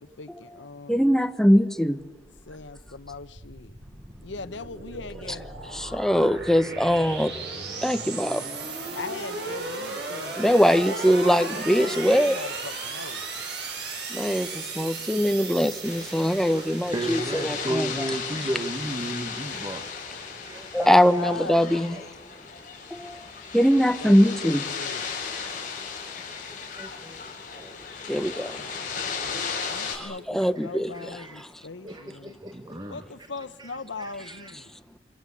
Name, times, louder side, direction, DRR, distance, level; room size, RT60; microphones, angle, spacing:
voice 1, 0.0-1.2 2.5-3.8 4.2-5.5 8.9-13.2 20.7-21.8 24.0-25.1 29.7-32.4 32.9-34.8, left 4 dB, 90° left, 1.0 m, -39 dB
voice 2, 0.9-2.0 5.7-7.3 7.8-8.4 10.4-12.4 14.1-18.1 20.7-22.0 22.9-23.3 23.5-24.6 28.1-28.6 29.5-30.9 31.4-31.5, equal, 5° left, 1.1 m, -22 dB
sound 1, 2.2-20.7, right 3 dB, 65° right, 7.4 m, -37 dB
sound 2, 15.8-30.0, left 6 dB, 45° left, 7.3 m, -35 dB
voice 3, 16.4-19.9 20.2-20.9 21.7-22.5 23.5-23.6 26.1-27.2 27.5-27.8 30.2-30.5 30.9-31.4 31.8-33.0 33.6-34.5, right 1 dB, 25° right, 1.5 m, -35 dB
26.5 x 25.5 x 8.5 m
head